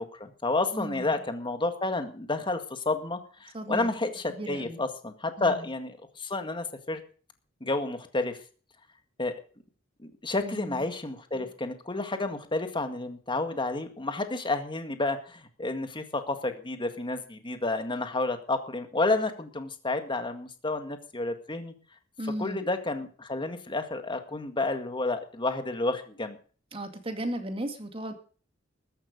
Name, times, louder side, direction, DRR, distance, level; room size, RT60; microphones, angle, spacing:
voice 1, 0.0-7.0 7.6-8.4 9.2-9.3 10.2-21.7 22.4-26.4, left 2 dB, 25° left, 7 dB, 1.9 m, -30 dB
voice 2, 0.7-1.1 3.5-3.9 4.3-4.8 5.4-5.6 10.4-10.8 22.2-22.7 26.7-28.1, right 1 dB, 30° right, 6 dB, 2.3 m, -35 dB
14.0 x 11.5 x 5.3 m, 0.39 s
head